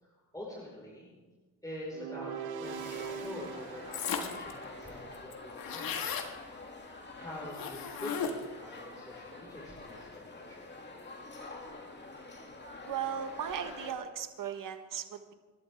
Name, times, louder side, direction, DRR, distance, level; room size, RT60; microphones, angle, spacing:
voice 1, 0.0-1.1 1.6-6.2 7.1-10.7, left 1 dB, 10° left, -5 dB, 5.1 m, -46 dB
sound 1, 1.9-5.2, right 7 dB, 80° right, 1.1 m, -42 dB
sound 2, 2.6-13.9, left 2 dB, 30° left, 2.5 m, -47 dB
sound 3, 3.9-4.5 4.9-5.0 5.1-6.3 7.5-8.6, left 6 dB, 70° left, 1.7 m, -35 dB
voice 2, 12.8-15.3, right 8 dB, 65° right, 8 dB, 1.5 m, -37 dB
26.5 x 12.0 x 3.6 m, 1.3 s
cardioid pair, 85°, 36 cm